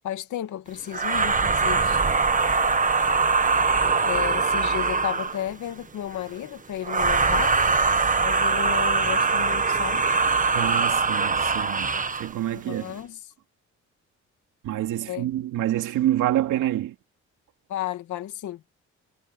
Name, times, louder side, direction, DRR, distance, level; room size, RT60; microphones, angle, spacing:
voice 1, 0.0-2.0 4.0-7.6 8.2-10.1 12.5-13.2 15.0-15.3 17.7-18.6, left 12 dB, 75° left, 2.5 m, -33 dB
sound 1, 0.9-5.5 6.8-12.3, right 4 dB, 25° right, 1.5 m, -22 dB
voice 2, 10.5-13.0 14.6-16.9, right 13 dB, 85° right, 2.8 m, -27 dB
cardioid pair, 90°, 30 cm